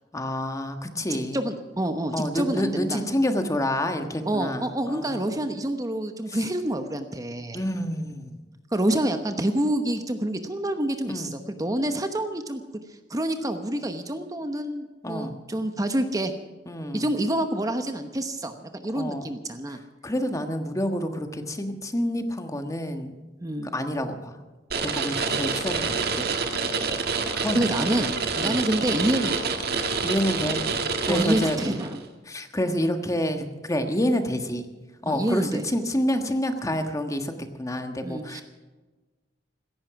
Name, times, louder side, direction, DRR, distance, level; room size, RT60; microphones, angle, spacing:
voice 1, 0.1-1.4 2.1-5.3 6.3-6.4 7.5-8.3 11.0-11.3 15.0-15.4 16.7-17.1 18.9-19.3 20.0-23.1 23.7-24.4 24.8-26.3 27.3-28.6 30.0-30.6 31.0-31.7 32.3-34.6 35.0-38.4, equal, 20° left, 7 dB, 1.4 m, -28 dB
voice 2, 1.3-3.0 4.3-7.6 8.7-12.6 12.9-16.3 16.9-19.8 23.4-23.7 25.3-25.4 27.5-28.1 28.4-29.3 31.1-32.0 35.0-35.6 38.0-38.4, right 1 dB, 20° right, 7 dB, 1.0 m, -27 dB
sound 1, 24.7-32.0, right 4 dB, 60° right, 1.9 m, -27 dB
16.5 x 14.5 x 5.9 m, 1.3 s
head